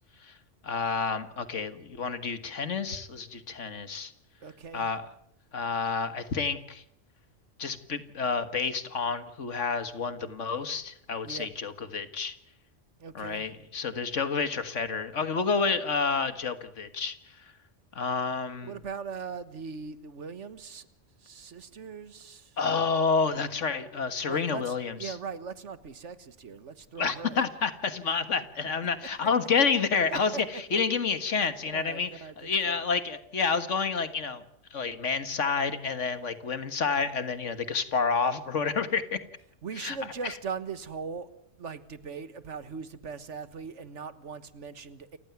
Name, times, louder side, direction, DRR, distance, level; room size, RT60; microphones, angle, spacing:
voice 1, 0.6-4.1 4.7-5.0 5.5-6.8 7.6-12.3 13.2-17.2 18.0-18.7 22.6-25.2 27.0-34.4 34.7-39.2 39.8-40.0 40.2-40.3, left 5 dB, 85° left, 11 dB, 1.9 m, -29 dB
voice 2, 4.4-4.9 11.2-11.5 13.0-13.5 18.6-20.9 21.2-22.6 24.3-27.4 30.1-30.4 30.7-30.8 31.6-32.8 39.6-41.3 41.6-45.2, right 5 dB, 80° right, 13 dB, 1.7 m, -40 dB
29.0 x 15.5 x 9.3 m, 0.75 s
omnidirectional pair, 1.2 m